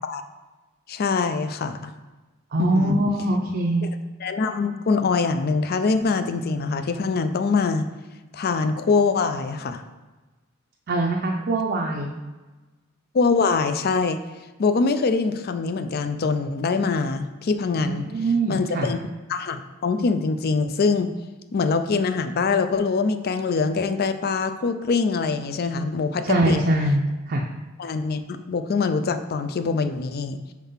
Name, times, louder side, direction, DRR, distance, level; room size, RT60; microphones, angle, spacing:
voice 1, 0.9-1.9 2.6-3.0 4.2-7.9 8.3-9.8 13.1-14.2 14.6-18.1 18.5-19.0 19.3-21.1 21.5-26.6 27.8-30.4, left 4 dB, 45° left, 10 dB, 0.4 m, -23 dB
voice 2, 2.5-3.9 10.9-12.1 17.8-18.9 26.2-27.0 27.3-27.4, right 1 dB, 45° right, 0 dB, 0.5 m, -23 dB
4.5 x 3.7 x 5.5 m, 1.2 s
head